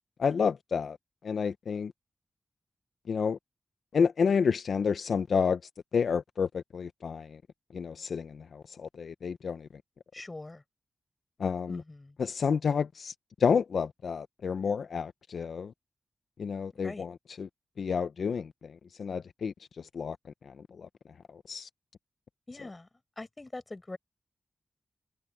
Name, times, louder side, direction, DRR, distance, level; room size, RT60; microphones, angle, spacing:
voice 1, 0.2-1.0 1.2-1.9 3.1-3.4 3.9-5.6 5.9-7.4 7.7-9.7 11.4-11.8 12.2-13.1 13.4-15.7 16.4-17.5 17.8-18.7 19.0-20.2 20.5-20.9 21.5-21.7, left 6 dB, 70° left, 0.6 m, -30 dB
voice 2, 10.1-10.6 11.7-12.2 16.8-17.1 22.5-22.9 23.2-24.0, left 2 dB, 20° left, 5.1 m, -42 dB
wide cardioid pair, 170°, 0 cm